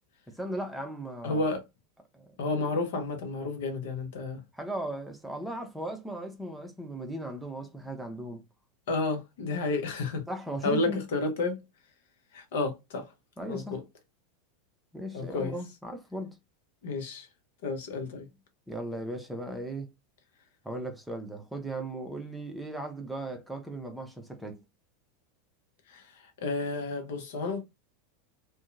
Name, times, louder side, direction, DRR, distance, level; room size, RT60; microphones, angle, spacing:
voice 1, 0.3-1.4 2.1-2.3 4.5-8.4 10.3-11.0 13.4-13.8 14.9-16.4 18.7-19.9 20.6-24.6, right 1 dB, 5° right, 0.6 m, -37 dB
voice 2, 1.2-1.6 2.4-4.4 8.9-10.3 10.6-11.6 12.3-13.1 13.5-13.8 15.1-15.5 16.8-17.3 17.6-18.3 25.9-27.6, left 3 dB, 60° left, 0.7 m, -31 dB
2.7 x 2.2 x 2.5 m
figure-of-eight pair, 85°, 0 cm